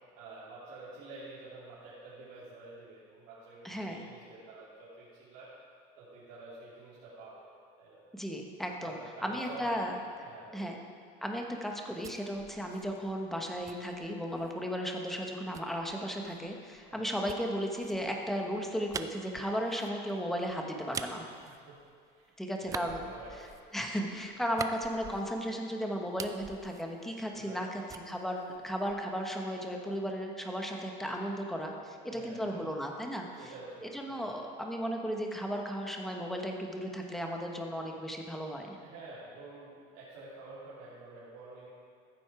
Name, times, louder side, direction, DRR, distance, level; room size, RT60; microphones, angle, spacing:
voice 1, 0.2-5.5 6.0-7.5 7.8-8.0 8.8-9.7 10.2-10.7 16.9-17.2 21.5-21.8 22.1-23.7 27.3-27.7 32.1-32.8 33.3-34.3 38.8-41.7, right 3 dB, 85° right, -10 dB, 2.8 m, -49 dB
voice 2, 3.6-4.0 8.1-9.9 10.5-10.8 11.2-21.3 22.4-23.0 23.7-33.3 33.8-38.8, equal, ahead, 1 dB, 1.0 m, -35 dB
sound 1, 11.6-14.6 15.5-22.2 22.6-25.6 25.9-27.6 27.9-29.2, right 6 dB, 20° right, 0.4 m, -46 dB
14.0 x 7.7 x 4.8 m, 2.2 s
cardioid pair, 150°, 19 cm